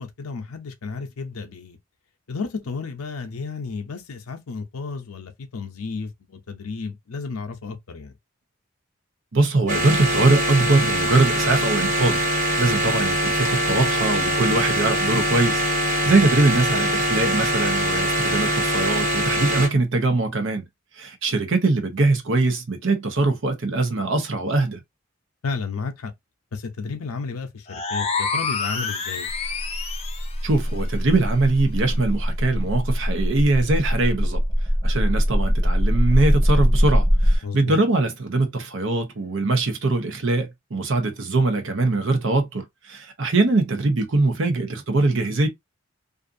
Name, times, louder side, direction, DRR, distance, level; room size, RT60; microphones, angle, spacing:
voice 1, 0.0-1.8 2.3-8.1 16.0-16.1 25.4-26.1 26.5-29.3 37.4-37.8, left 4 dB, 90° left, 0.6 m, -32 dB
voice 2, 9.3-12.3 12.6-15.6 16.1-20.6 21.0-24.8 30.4-34.4 34.8-45.5, right 2 dB, 60° right, 0.7 m, -22 dB
sound 1, 9.7-19.7, right 1 dB, 35° right, 1.2 m, -23 dB
sound 2, 27.7-30.4, left 5 dB, 30° left, 0.4 m, -28 dB
sound 3, 29.3-37.4, equal, 10° right, 0.8 m, -21 dB
2.5 x 2.5 x 2.5 m
head